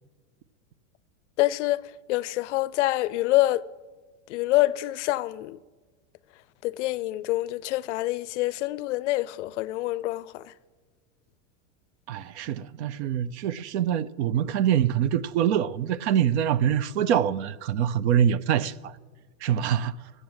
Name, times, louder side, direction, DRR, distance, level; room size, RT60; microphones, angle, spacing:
voice 1, 1.4-1.8 2.1-3.6 4.3-5.6 6.6-10.4, left 17 dB, 60° left, 0.5 m, -26 dB
voice 2, 12.1-18.9 19.4-20.0, right 9 dB, 55° right, 0.6 m, -25 dB
14.5 x 7.7 x 7.9 m
supercardioid pair, 165°, 40 cm